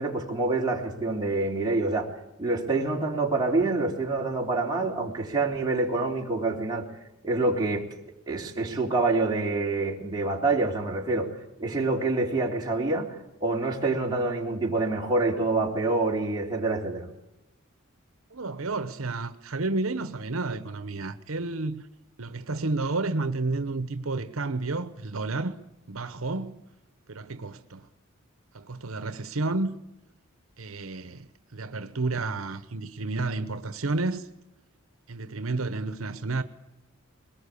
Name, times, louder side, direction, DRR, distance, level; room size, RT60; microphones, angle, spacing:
voice 1, 0.0-2.1 2.4-7.0 7.2-7.9 8.3-17.1, right 3 dB, 20° right, 3.3 m, -27 dB
voice 2, 18.3-21.9 22.2-25.6 25.9-26.6 27.1-27.9 28.5-29.8 30.6-34.3 35.1-36.4, right 3 dB, 85° right, 1.1 m, -31 dB
22.0 x 19.5 x 8.5 m
head